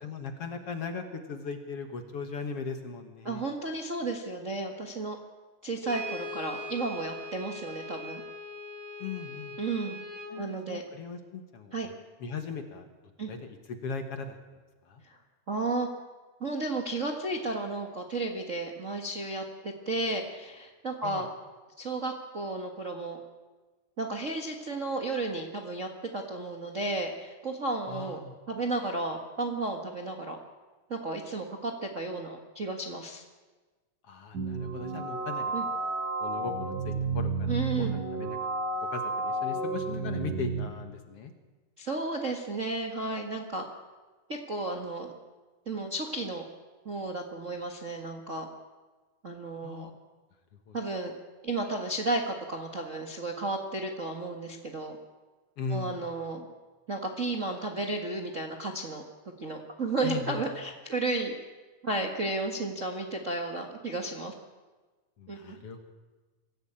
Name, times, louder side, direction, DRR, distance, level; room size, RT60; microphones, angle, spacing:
voice 1, 0.0-3.4 9.0-9.6 10.3-11.9 12.2-12.9 13.3-14.4 14.8-15.0 21.0-21.2 27.9-28.4 34.0-35.9 36.2-38.4 38.8-41.3 49.6-49.9 50.7-50.8 55.6-56.0 60.0-60.4 65.2-65.8, left 5 dB, 55° left, 7 dB, 2.1 m, -38 dB
voice 2, 3.2-5.2 5.6-8.2 9.6-10.0 10.3-10.8 11.7-11.9 13.2-13.3 15.0-15.2 15.5-15.9 16.4-21.3 21.8-23.2 24.0-28.2 28.5-30.4 30.9-33.2 35.5-35.6 37.5-37.9 41.8-43.6 44.3-45.1 45.6-46.4 46.8-48.5 49.2-49.9 50.7-51.2 51.4-55.0 55.7-56.5 56.9-59.0 59.4-61.3 61.8-64.3 65.3-65.6, right 2 dB, 35° right, 2 dB, 1.2 m, -33 dB
Brass instrument, 5.8-10.4, left 1 dB, 55° right, 4.9 m, -41 dB
sound 1, 34.3-40.7, right 3 dB, 75° right, 5.2 m, -31 dB
24.0 x 16.0 x 8.8 m, 1.3 s
omnidirectional pair, 3.7 m